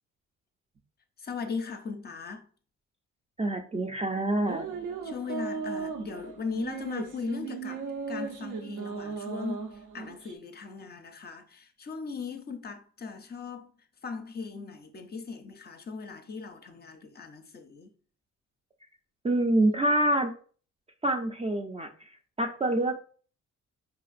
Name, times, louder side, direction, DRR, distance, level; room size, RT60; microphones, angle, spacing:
voice 1, 1.2-2.5 5.0-17.9, left 5 dB, 35° left, 0.5 m, -38 dB
voice 2, 3.4-4.7 19.2-20.3 21.0-22.1 22.4-23.0, right 1 dB, 20° right, 0.4 m, -26 dB
sound 1, 4.4-10.3, right 5 dB, 75° right, 0.6 m, -37 dB
5.0 x 2.4 x 2.4 m
cardioid pair, 90°, 30 cm